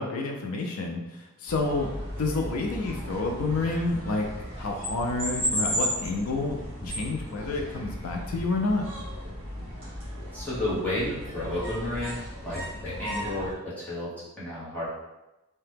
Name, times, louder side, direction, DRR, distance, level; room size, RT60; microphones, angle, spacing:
voice 1, 0.0-1.9 2.2-4.3 4.6-6.6 6.8-8.8, left 3 dB, 80° left, 1 dB, 0.4 m, -29 dB
sound 1, 1.5-13.5, equal, 25° right, 1.2 m, -35 dB
voice 2, 10.3-14.9, left 1 dB, 5° left, -10 dB, 0.9 m, -32 dB
2.8 x 2.2 x 3.3 m, 1.0 s
head